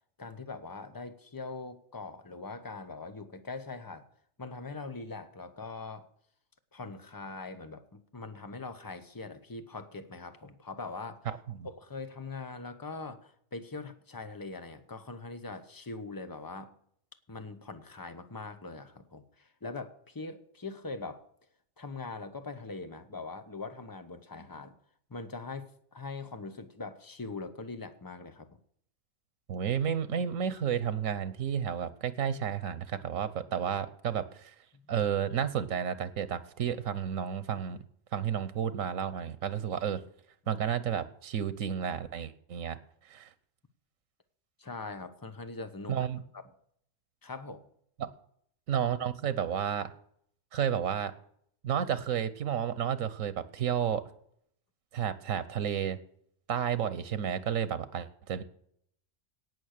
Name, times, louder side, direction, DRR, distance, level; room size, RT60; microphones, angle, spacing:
voice 1, 0.2-4.0 4.4-6.1 6.7-11.3 11.6-16.7 17.3-21.2 21.8-24.8 25.1-28.6 34.7-35.0 40.4-40.6 44.6-46.0 46.3-46.5 47.2-47.7, left 3 dB, 20° left, 9 dB, 0.9 m, -42 dB
voice 2, 11.3-11.7 29.5-34.5 34.9-37.8 38.1-40.0 40.5-42.8 43.1-43.3 45.9-46.2 48.0-48.1 48.7-49.9 50.5-51.1 51.6-54.1 54.9-56.0 56.5-58.4, right 8 dB, 90° right, 15 dB, 1.3 m, -31 dB
18.0 x 6.4 x 6.5 m, 0.67 s
omnidirectional pair, 1.3 m